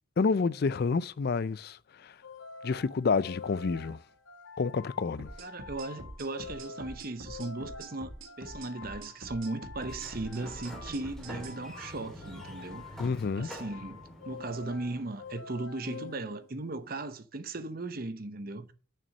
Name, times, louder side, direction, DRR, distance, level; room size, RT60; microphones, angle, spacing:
voice 1, 0.2-2.1 2.6-4.0 4.6-5.3 13.0-13.5, left 4 dB, 50° left, 0.4 m, -29 dB
sound 1, 2.2-16.8, left 4 dB, 75° left, 1.2 m, -48 dB
sound 2, 5.2-11.6, right 1 dB, 80° right, 1.6 m, -45 dB
voice 2, 5.4-13.0 13.4-18.7, right 2 dB, 45° right, 0.8 m, -37 dB
Sliding door, 9.8-15.5, equal, ahead, 2.0 m, -48 dB
6.8 x 6.2 x 6.4 m
head